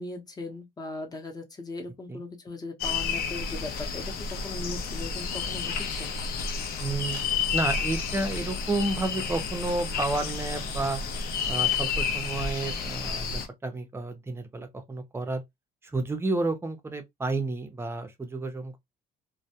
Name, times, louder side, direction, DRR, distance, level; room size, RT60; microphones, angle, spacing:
voice 1, 0.0-4.1 4.4-6.1, left 2 dB, 20° left, 0.7 m, -38 dB
sound 1, 2.8-13.5, left 5 dB, 65° left, 0.6 m, -30 dB
voice 2, 6.8-7.2 7.5-11.0 11.5-15.4 15.9-18.8, right 2 dB, 15° right, 0.6 m, -31 dB
2.2 x 2.1 x 2.7 m
cardioid pair, 110°, 17 cm